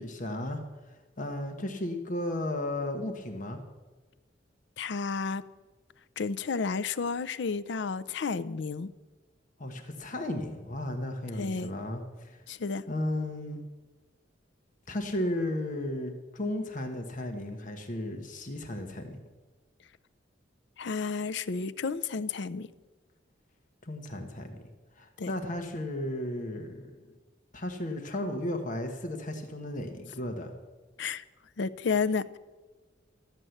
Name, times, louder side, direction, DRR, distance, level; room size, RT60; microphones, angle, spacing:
voice 1, 0.0-3.6 9.6-12.4 12.9-13.6 14.9-19.2 23.8-24.6 25.0-27.1 27.5-30.5, left 1 dB, 45° left, 5 dB, 1.1 m, -34 dB
voice 2, 4.8-5.4 6.2-8.9 11.4-11.7 12.5-12.8 20.8-22.7 25.2-25.3 31.0-31.2 31.6-32.4, left 5 dB, 65° left, 15 dB, 0.5 m, -31 dB
12.5 x 7.5 x 7.8 m, 1.3 s
head